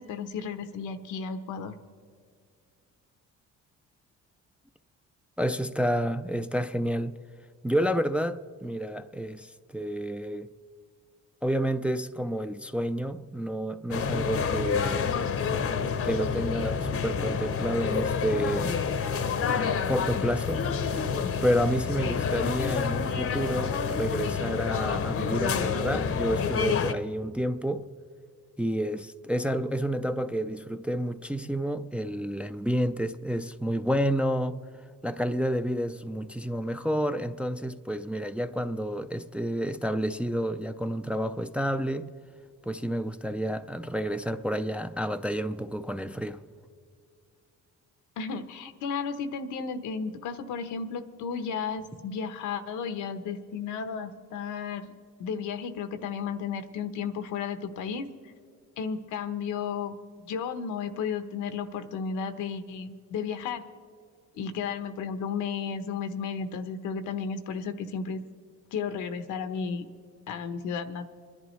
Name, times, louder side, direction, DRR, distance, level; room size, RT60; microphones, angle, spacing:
voice 1, 0.0-1.7 48.2-54.9 55.2-58.1 58.8-63.6 64.3-68.2 68.7-69.8 70.3-71.1, left 6 dB, 85° left, 0.9 m, -33 dB
voice 2, 5.4-7.2 7.6-10.5 11.4-15.1 16.0-18.8 19.9-20.7 21.4-27.8 28.6-34.6 35.0-42.1 42.7-46.4, equal, 5° right, 0.4 m, -29 dB
sound 1, 13.9-26.9, left 6 dB, 50° left, 0.8 m, -28 dB
29.0 x 11.0 x 3.1 m
cardioid pair, 90°, 30 cm